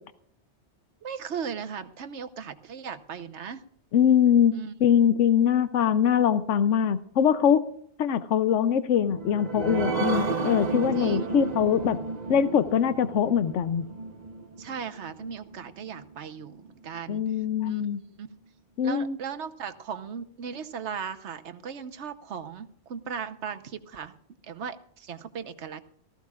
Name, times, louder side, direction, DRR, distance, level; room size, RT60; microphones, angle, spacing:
voice 1, 1.0-3.6 4.5-4.7 11.0-11.4 14.6-17.2 17.6-18.3 18.8-24.1 24.4-25.8, right 7 dB, 70° right, 9 dB, 1.2 m, -37 dB
voice 2, 3.9-4.5 4.8-7.6 8.0-12.0 12.3-13.8 17.1-18.0 18.8-19.2, left 8 dB, 85° left, 12 dB, 1.0 m, -22 dB
sound 1, 9.0-16.0 16.5-16.6 16.9-17.0, right 4 dB, 40° right, 1.0 m, -32 dB
19.0 x 14.5 x 2.4 m, 0.67 s
omnidirectional pair, 1.2 m